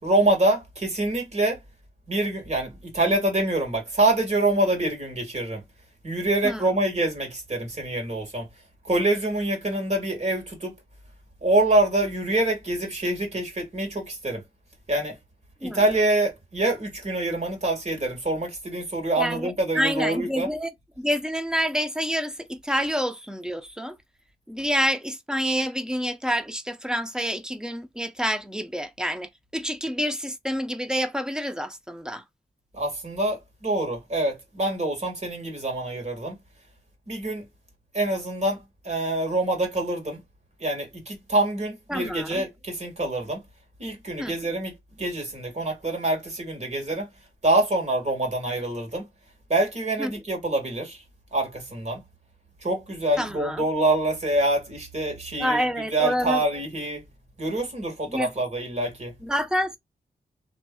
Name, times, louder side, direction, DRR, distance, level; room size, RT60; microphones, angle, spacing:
voice 1, 0.0-1.6 2.1-5.6 6.0-8.5 8.8-10.7 11.4-14.4 14.9-15.2 15.6-20.5 32.7-36.4 37.1-37.4 37.9-40.2 40.6-43.4 43.8-44.7 45.0-47.1 47.4-49.1 49.5-51.0 51.3-52.0 52.6-55.6 55.9-57.0 57.4-59.1, right 2 dB, 45° right, 1.6 m, -25 dB
voice 2, 19.2-20.7 21.0-24.0 24.5-32.2 41.9-42.5 44.2-44.4 50.0-50.2 53.2-53.6 55.4-56.4 58.1-58.3 59.2-59.8, equal, 5° right, 0.5 m, -28 dB
2.9 x 2.7 x 2.3 m
wide cardioid pair, 75°, 17 cm